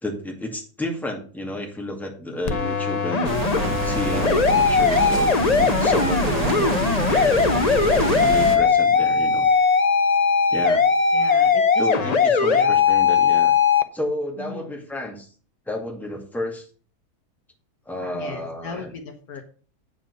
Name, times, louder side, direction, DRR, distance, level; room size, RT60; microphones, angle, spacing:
voice 1, 0.0-3.4 3.8-7.5 8.3-9.5 10.5-10.8 11.8-13.5 13.9-15.3 15.7-16.7 17.9-18.9, left 1 dB, ahead, 1 dB, 2.0 m, -31 dB
sound 1, 2.5-13.8, left 5 dB, 45° left, 0.5 m, -19 dB
sound 2, 3.2-8.6, right 5 dB, 80° right, 1.9 m, -26 dB
voice 2, 11.1-12.7 14.4-14.6 18.1-19.4, left 5 dB, 65° left, 5 dB, 1.6 m, -37 dB
8.7 x 5.2 x 6.5 m, 0.40 s
omnidirectional pair, 1.7 m